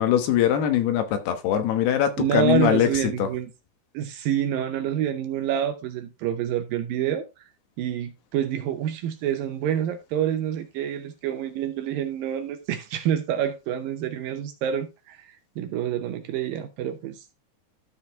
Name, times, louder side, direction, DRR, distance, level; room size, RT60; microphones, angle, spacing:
voice 1, 0.0-3.3, left 10 dB, 80° left, 3.2 m, -22 dB
voice 2, 2.2-3.5 3.9-7.5 7.8-17.2, right 10 dB, 75° right, 2.2 m, -27 dB
13.0 x 5.0 x 3.5 m
omnidirectional pair, 4.6 m